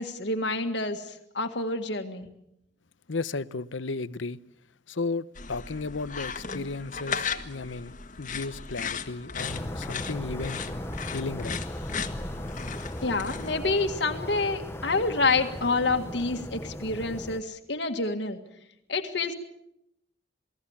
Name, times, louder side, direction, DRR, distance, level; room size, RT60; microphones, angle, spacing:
voice 1, 0.0-2.3 13.0-18.4 18.9-19.3, left 3 dB, 65° left, 1.8 m, -28 dB
voice 2, 3.1-4.4 4.9-10.6 11.1-11.6, left 3 dB, 85° left, 0.8 m, -34 dB
sound 1, 5.4-13.8, left 6 dB, 40° left, 1.6 m, -36 dB
sound 2, 9.4-17.4, left 1 dB, 15° left, 0.9 m, -37 dB
28.5 x 19.5 x 7.2 m
head